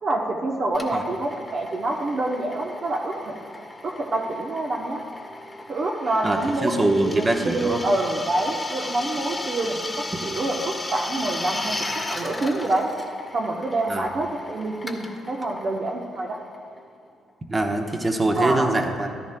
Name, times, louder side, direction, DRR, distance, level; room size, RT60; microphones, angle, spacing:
voice 1, 0.0-3.3 3.8-5.0 5.7-11.8 12.1-12.9 13.3-16.4 18.3-18.7, right 2 dB, 50° right, 0 dB, 0.9 m, -26 dB
Drill, 0.7-17.1, left 2 dB, 15° left, 1.1 m, -36 dB
voice 2, 6.2-7.8 13.9-14.1 17.5-19.3, right 2 dB, 25° right, 2 dB, 1.0 m, -23 dB
14.0 x 12.5 x 2.2 m, 2.2 s
cardioid pair, 90°, 0 cm